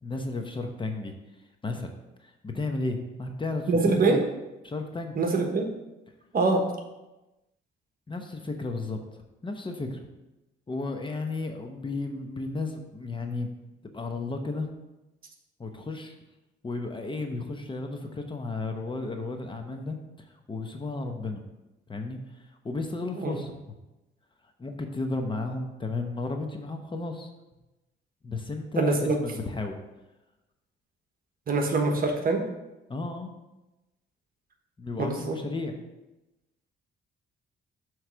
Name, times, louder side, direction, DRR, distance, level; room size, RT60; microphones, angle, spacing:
voice 1, 0.0-1.1 1.6-1.9 2.2-4.2 4.6-5.2 8.1-9.0 9.4-10.0 10.7-13.5 13.9-14.7 15.6-16.1 16.6-20.0 20.5-21.4 21.9-22.2 22.6-23.6 24.6-27.3 28.2-29.8 32.9-33.3 34.8-35.7, left 3 dB, 25° left, 4 dB, 0.8 m, -33 dB
voice 2, 3.7-4.2 5.2-5.7 6.3-6.7 23.2-23.4 28.8-29.2 31.5-32.4 35.0-35.4, right 3 dB, 45° right, 3 dB, 1.2 m, -24 dB
7.9 x 3.2 x 6.1 m, 1.0 s
cardioid pair, 90°, 20 cm